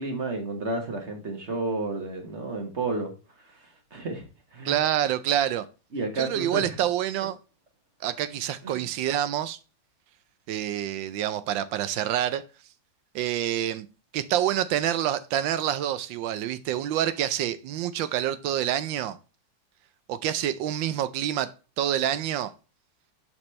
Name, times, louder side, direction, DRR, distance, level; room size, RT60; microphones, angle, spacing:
voice 1, 0.0-3.1 3.9-4.2 4.5-4.7 5.9-6.7 8.6-8.8, right 3 dB, 40° right, 1.4 m, -31 dB
voice 2, 4.6-5.7 6.2-7.4 8.0-9.6 10.5-12.4 13.1-13.9 14.1-19.2 20.1-22.5, right 11 dB, 85° right, 1.3 m, -27 dB
6.2 x 5.9 x 3.2 m
omnidirectional pair, 2.0 m